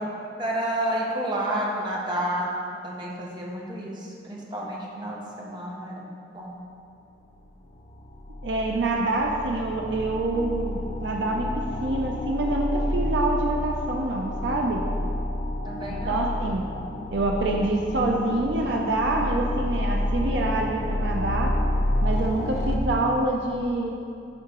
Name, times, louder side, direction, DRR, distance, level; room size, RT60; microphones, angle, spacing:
voice 1, 0.4-2.5 2.8-6.6 15.6-16.3, right 1 dB, 25° right, -4 dB, 1.0 m, -30 dB
sound 1, 7.4-7.5 7.7-22.8, left 1 dB, 40° left, 0.4 m, -29 dB
voice 2, 8.4-14.8 16.1-16.6 17.1-21.5 22.0-23.9, right 2 dB, 70° right, 1 dB, 0.5 m, -26 dB
11.0 x 3.8 x 2.9 m, 2.6 s
head